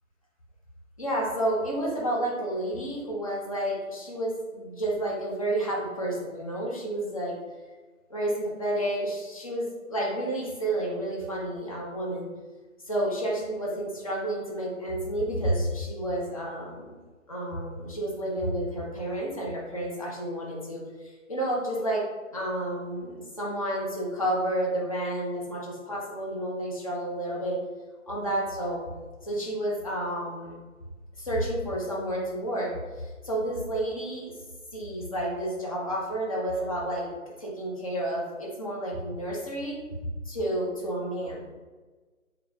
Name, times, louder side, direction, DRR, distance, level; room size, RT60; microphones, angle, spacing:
voice 1, 1.0-7.4 8.1-12.3 12.8-17.0 17.3-22.0 22.3-27.6 28.1-28.8 29.2-30.6 31.2-34.3 34.7-37.1 37.4-39.8 40.3-41.5, right 1 dB, 25° left, -4 dB, 0.6 m, -30 dB
4.5 x 2.1 x 3.3 m, 1.3 s
figure-of-eight pair, 155°, 41 cm